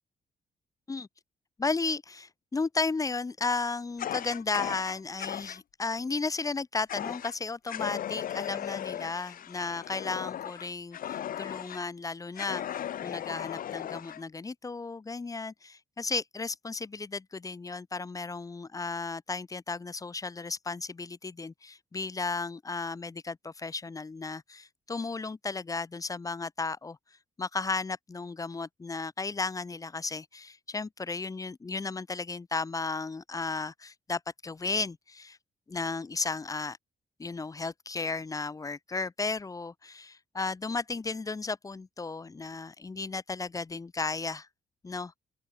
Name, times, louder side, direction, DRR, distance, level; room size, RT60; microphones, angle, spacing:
voice 1, 1.6-27.0 27.4-35.4 35.7-36.8 37.2-44.5 44.8-45.2, left 4 dB, 20° left, 0.7 m, -34 dB
Fire, 4.0-5.6 6.9-7.3 7.7-11.8 12.4-14.2, left 10 dB, 65° left, 0.7 m, -37 dB
open air
cardioid pair, 115°, 16 cm